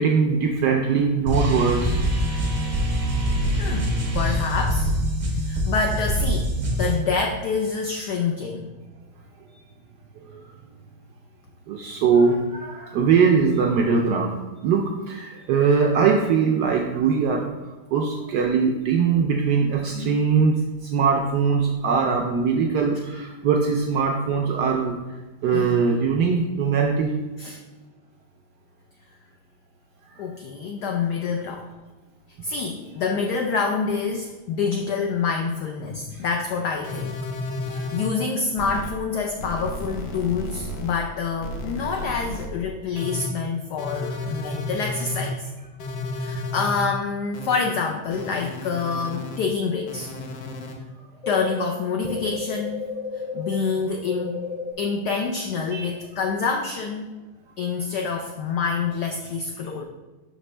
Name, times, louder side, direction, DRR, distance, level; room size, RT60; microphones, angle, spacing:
voice 1, 0.0-2.0 10.2-10.5 11.7-25.0 25.4-27.1 30.1-30.2 36.1-36.2 37.7-37.9 44.1-44.2 55.7-56.0, right 5 dB, 80° right, 1 dB, 0.9 m, -22 dB
sound 1, 1.3-7.0, equal, 45° right, 0.5 m, -24 dB
voice 2, 3.6-4.9 5.3-8.7 19.9-20.2 25.5-25.8 27.4-27.6 30.2-31.7 32.4-37.1 37.6-45.5 46.1-50.1 51.3-52.8 53.3-54.4 54.8-57.1 57.6-59.8, left 5 dB, 90° left, 3 dB, 0.9 m, -27 dB
sound 2, 36.8-38.1 38.6-38.9 39.4-40.9 41.4-42.5 43.0-43.3 43.8-45.3 45.8-46.8 47.3-47.6 48.1-49.4 49.9-50.7 51.2-51.6 52.1-53.6 54.1-54.7, left 2 dB, 65° left, 1.2 m, -32 dB
5.8 x 5.1 x 3.2 m, 1.2 s
omnidirectional pair, 2.3 m